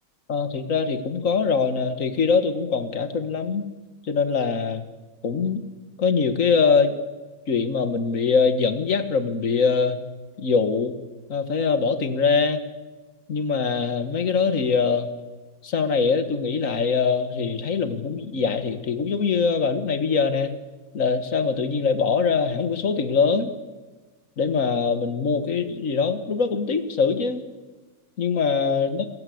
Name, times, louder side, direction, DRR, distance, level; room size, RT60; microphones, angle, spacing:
voice 1, 0.3-3.7 4.1-4.8 5.2-5.6 6.0-7.0 7.5-10.0 10.4-10.9 11.3-12.6 13.3-15.1 15.6-20.5 20.9-23.5 24.4-27.4 28.2-29.0, left 5 dB, 60° left, 9 dB, 2.0 m, -23 dB
27.0 x 15.5 x 8.0 m, 1.2 s
omnidirectional pair, 1.6 m